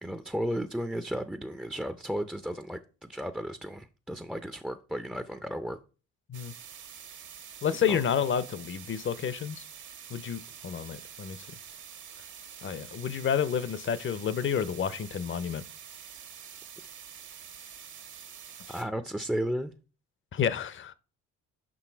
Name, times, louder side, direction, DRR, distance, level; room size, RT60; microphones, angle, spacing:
voice 1, 0.0-5.8 7.9-8.0 18.7-19.7, equal, 5° right, 0.4 m, -34 dB
sound 1, 6.3-18.8, right 8 dB, 70° right, 1.4 m, -47 dB
voice 2, 7.6-9.6 10.1-11.4 12.6-15.6 20.3-20.9, left 8 dB, 40° left, 0.6 m, -30 dB
6.2 x 5.4 x 4.5 m
cardioid pair, 90°, 30 cm